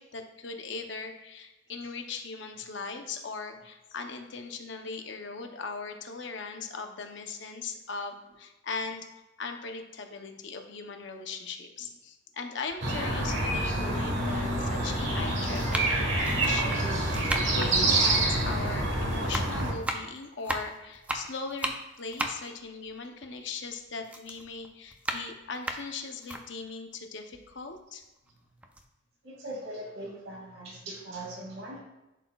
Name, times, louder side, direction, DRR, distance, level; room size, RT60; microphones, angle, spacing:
voice 1, 0.0-9.1 9.4-28.0, left 4 dB, 60° left, 5 dB, 0.7 m, -39 dB
sound 1, 12.7-12.8 13.7-13.8 14.8-15.0 15.5-18.9 19.1-23.7 24.0-26.4 26.9-27.0 27.3-28.3 28.6-28.8, right 1 dB, 5° right, 0.4 m, -36 dB
sound 2, 12.8-19.7, right 2 dB, 65° right, 1.3 m, -27 dB
voice 2, 29.2-31.8, right 1 dB, 85° right, -3 dB, 2.3 m, -40 dB
10.5 x 4.2 x 2.3 m, 0.99 s
head